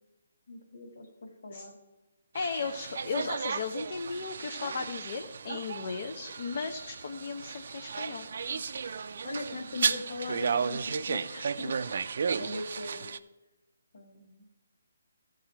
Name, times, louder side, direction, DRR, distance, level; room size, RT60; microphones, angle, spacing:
voice 1, 0.5-1.8 8.5-8.6 9.2-11.8 12.4-13.1 13.9-14.4, left 2 dB, 75° left, 2 dB, 2.2 m, -40 dB
voice 2, 2.3-8.3, left 5 dB, 55° left, 4 dB, 0.8 m, -36 dB
sound 1, 2.4-13.2, right 6 dB, 60° right, 0.4 m, -34 dB
14.0 x 5.0 x 4.5 m, 1.1 s
hypercardioid pair, 160°, 0 cm